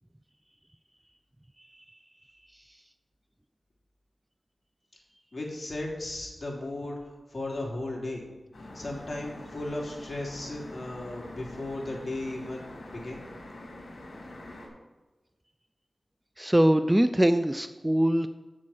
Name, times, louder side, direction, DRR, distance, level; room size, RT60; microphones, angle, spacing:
voice 1, 5.3-7.0 7.3-8.2 8.7-13.2, left 2 dB, 40° left, -2 dB, 3.2 m, -35 dB
sound 1, 8.5-14.7, left 1 dB, 70° left, 3.5 m, -45 dB
voice 2, 16.4-18.3, right 1 dB, 10° right, 10 dB, 0.4 m, -22 dB
7.5 x 7.3 x 7.7 m, 1.2 s
wide cardioid pair, 70°, 0 cm